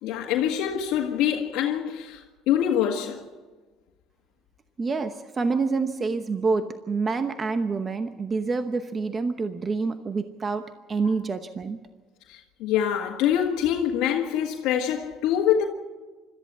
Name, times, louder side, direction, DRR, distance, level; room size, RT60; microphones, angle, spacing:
voice 1, 0.0-3.2 11.0-11.1 12.3-15.6, left 9 dB, 75° left, 1.7 m, -25 dB
voice 2, 4.8-11.8, right 4 dB, 25° right, 0.9 m, -27 dB
26.0 x 13.5 x 7.4 m
cardioid pair, 135°, 0 cm